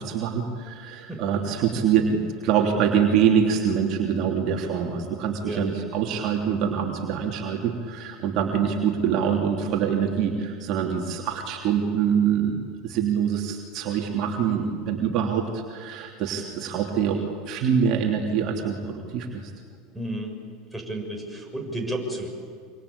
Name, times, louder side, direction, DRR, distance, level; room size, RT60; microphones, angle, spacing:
voice 1, 0.0-19.5, right 7 dB, 50° right, 1 dB, 3.1 m, -25 dB
voice 2, 1.1-1.4 5.4-5.7 19.9-20.4 20.7-22.3, right 1 dB, ahead, -1 dB, 7.5 m, -32 dB
26.5 x 25.5 x 8.7 m, 2.2 s
hypercardioid pair, 80°, 0 cm